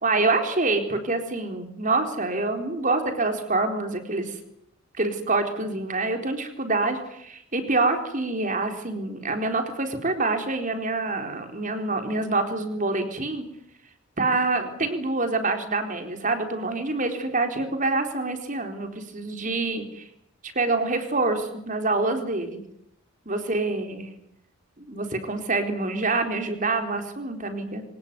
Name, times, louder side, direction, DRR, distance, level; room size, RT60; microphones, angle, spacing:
voice 1, 0.0-4.3 5.0-13.4 14.2-20.0 20.6-22.6 23.3-24.1 24.8-27.8, right 3 dB, 40° right, 6 dB, 4.0 m, -26 dB
24.5 x 20.0 x 9.7 m, 0.75 s
head